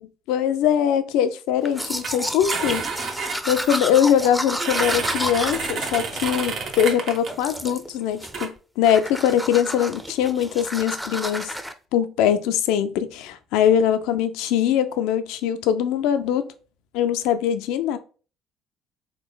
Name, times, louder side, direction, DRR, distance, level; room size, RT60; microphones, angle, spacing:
voice 1, 0.0-3.2 3.5-11.5 11.9-16.5 16.9-18.0, left 9 dB, 80° left, 0.3 m, -22 dB
Domestic sounds home sounds, 1.6-6.9 7.3-7.9 8.2-8.6 8.8-11.7, equal, ahead, 0.4 m, -31 dB
sound 1, 2.0-2.1 2.5-3.8 4.5-7.3 8.2-8.5, right 5 dB, 60° right, 0.8 m, -29 dB
3.2 x 2.9 x 2.3 m
hypercardioid pair, 65°, 0 cm